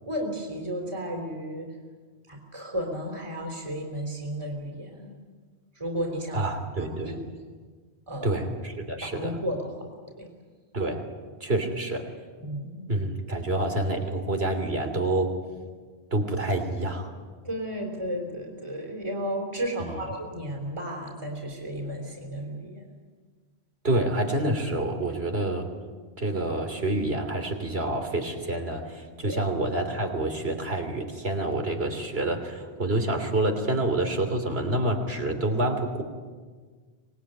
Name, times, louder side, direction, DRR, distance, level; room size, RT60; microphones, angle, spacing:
voice 1, 0.1-1.8 2.3-5.1 5.8-6.5 6.8-7.2 8.1-8.4 9.0-9.7 10.2-10.3 12.4-12.8 17.4-22.8 25.1-25.2 29.1-29.4, equal, 30° right, 1 dB, 3.5 m, -33 dB
voice 2, 6.3-7.2 8.2-9.4 10.7-11.0 11.4-12.1 12.9-15.3 16.1-17.1 23.8-25.7 26.2-36.0, right 2 dB, 70° right, 5 dB, 3.4 m, -27 dB
26.0 x 20.0 x 9.1 m, 1.5 s
omnidirectional pair, 1.1 m